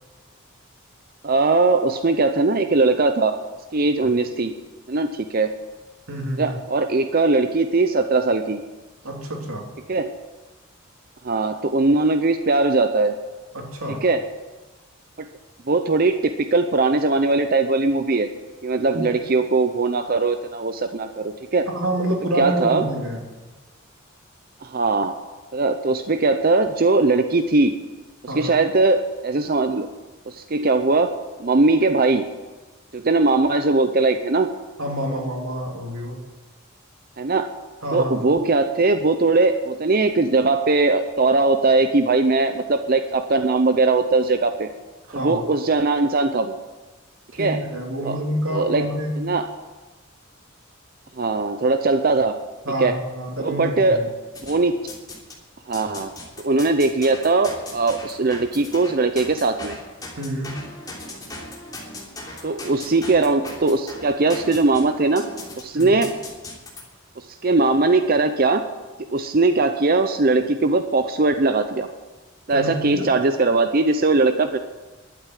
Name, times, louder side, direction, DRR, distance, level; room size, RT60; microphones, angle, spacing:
voice 1, 1.2-3.4 3.7-4.5 4.9-5.5 6.4-8.6 9.9-10.1 11.2-13.1 13.9-14.2 15.2-15.3 15.7-18.3 18.6-21.7 22.4-22.9 24.6-25.1 25.5-27.7 28.3-29.9 30.3-31.1 31.4-32.3 32.9-34.5 37.2-37.5 37.9-44.7 45.1-46.6 47.4-47.6 48.0-48.2 48.5-48.9 49.2-49.4 51.2-52.4 52.8-52.9 53.4-54.0 54.4-54.8 55.7-56.1 56.4-59.8 62.4-65.2 65.6-66.1 67.2-68.6 69.1-71.9 72.5-74.6, right 3 dB, 45° right, 7 dB, 0.7 m, -20 dB
voice 2, 6.1-6.5 9.0-9.7 13.5-14.0 18.9-19.1 21.7-23.3 28.3-28.5 34.8-36.2 37.8-38.3 45.1-45.4 47.3-49.2 52.6-54.1 60.2-60.6 65.7-66.0 72.5-73.1, right 1 dB, 90° right, 1 dB, 2.9 m, -27 dB
sound 1, 54.3-55.4 55.7-66.8, left 2 dB, 20° left, 3.2 m, -38 dB
12.0 x 9.1 x 9.2 m, 1.2 s
head